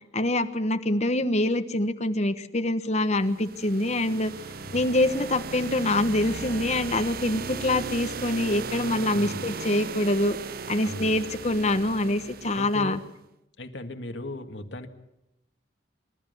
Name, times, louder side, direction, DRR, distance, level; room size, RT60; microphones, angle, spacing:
voice 1, 0.1-4.3 4.7-10.4 10.7-13.0, left 1 dB, 40° left, 9 dB, 1.2 m, -25 dB
sound 1, 3.2-13.0, right 5 dB, 50° right, 0.7 m, -37 dB
voice 2, 9.1-9.5 10.8-11.1 12.6-13.0 13.6-14.9, left 1 dB, 70° left, 5 dB, 2.1 m, -37 dB
26.0 x 13.0 x 9.4 m, 0.87 s
head